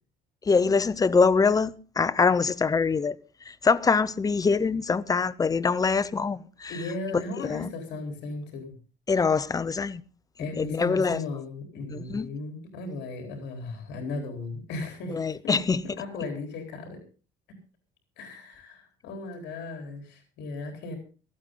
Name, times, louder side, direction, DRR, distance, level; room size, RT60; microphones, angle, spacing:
voice 1, 0.4-3.2 3.4-6.9 7.4-7.7 9.1-10.0 10.4-11.2 11.9-12.3 15.1-15.8, left 5 dB, 20° left, 0.8 m, -24 dB
voice 2, 6.7-8.7 10.4-15.2 15.4-15.6 16.0-17.0 18.2-21.0, left 3 dB, 75° left, 4.1 m, -36 dB
17.0 x 14.5 x 3.8 m
cardioid pair, 120°, 18 cm